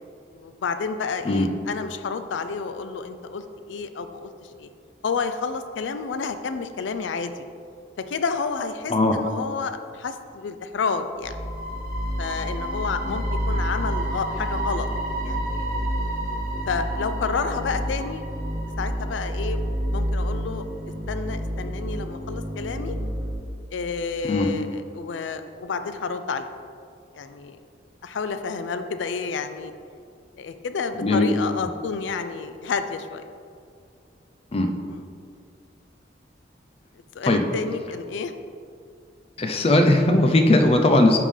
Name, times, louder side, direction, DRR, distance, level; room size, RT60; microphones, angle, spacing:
voice 1, 0.3-4.3 4.6-4.7 5.0-7.4 8.0-11.5 12.2-14.9 15.2-15.8 16.7-18.2 18.8-19.6 19.9-20.7 21.1-23.0 23.7-26.5 27.1-27.6 28.0-29.7 30.4-33.3 34.9-35.0 37.1-38.3, left 5 dB, 85° left, 9 dB, 0.4 m, -30 dB
sound 1, 11.2-23.3, equal, 50° right, 1.0 m, -28 dB
voice 2, 31.0-31.3 34.5-34.7 37.3-37.4 39.4-41.2, left 1 dB, 35° left, 4 dB, 0.5 m, -18 dB
10.5 x 3.6 x 3.3 m, 2.3 s
head